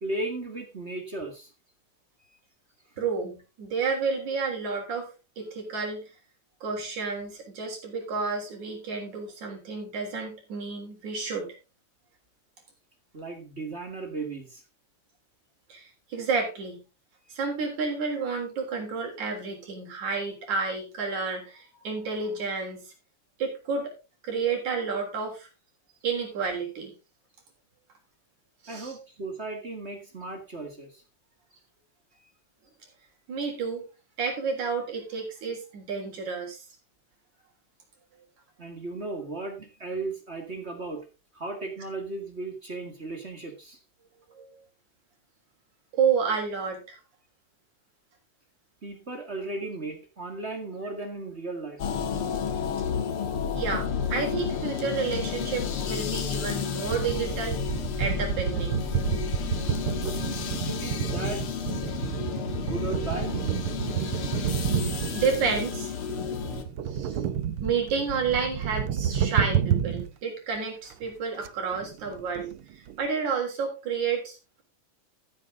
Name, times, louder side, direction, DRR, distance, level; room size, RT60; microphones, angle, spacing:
voice 1, 0.0-1.5 13.1-14.6 28.7-31.0 38.6-41.1 41.3-43.8 48.8-51.8 60.0-60.2 60.7-61.5 62.5-63.3, right 2 dB, 25° right, 4 dB, 1.5 m, -36 dB
voice 2, 3.0-5.1 5.4-6.1 6.6-11.5 15.7-16.8 17.3-22.9 23.4-23.9 24.2-25.5 26.0-26.9 28.6-28.9 33.3-33.8 34.2-36.7 44.4-44.5 45.9-47.0 53.5-58.8 64.0-64.1 64.8-65.9 66.9-67.2 67.6-74.6, right 5 dB, 65° right, 0 dB, 5.1 m, -30 dB
sound 1, 51.8-66.6, left 7 dB, 55° left, 1.8 m, -31 dB
sound 2, 56.8-70.1 70.6-70.7 70.9-71.1 71.4-71.5 71.7-73.1, right 9 dB, 90° right, 1.2 m, -30 dB
13.5 x 8.1 x 3.8 m, 0.30 s
omnidirectional pair, 3.6 m